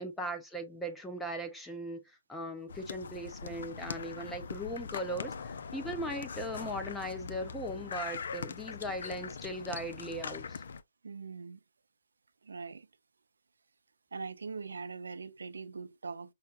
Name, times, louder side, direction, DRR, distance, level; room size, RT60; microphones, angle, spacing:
voice 1, 0.0-2.0 2.3-10.6, equal, 5° left, 0.7 m, -38 dB
sound 1, 2.7-10.8, left 5 dB, 70° left, 0.5 m, -42 dB
voice 2, 11.0-11.6 12.4-12.9 14.1-16.3, right 4 dB, 90° right, 0.4 m, -42 dB
5.6 x 2.2 x 2.5 m
hypercardioid pair, 150°, 0 cm